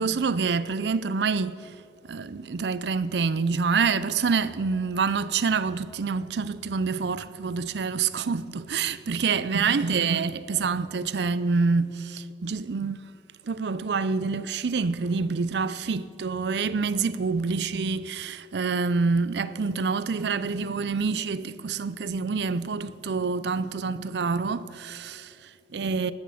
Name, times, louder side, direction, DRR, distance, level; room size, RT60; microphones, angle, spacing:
voice 1, 0.0-1.7 2.0-13.0 13.4-26.1, right 4 dB, 70° right, 0.5 m, -27 dB
19.0 x 7.9 x 7.1 m
head